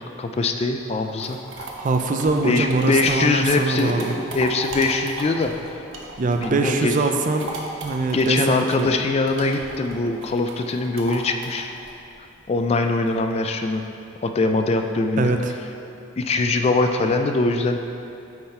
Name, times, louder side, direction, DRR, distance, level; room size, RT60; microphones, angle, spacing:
voice 1, 0.0-1.6 2.4-5.8 6.4-6.9 8.1-11.7 12.5-13.8 14.2-15.3 16.2-17.8, left 3 dB, 35° left, 6 dB, 0.3 m, -22 dB
sound 1, 0.9-6.7 7.0-13.3, right 2 dB, 80° right, 0.9 m, -37 dB
voice 2, 1.7-4.1 6.2-7.5 7.8-8.9 15.2-15.4, right 3 dB, 40° right, 5 dB, 0.4 m, -22 dB
9.4 x 3.9 x 4.3 m, 2.7 s
head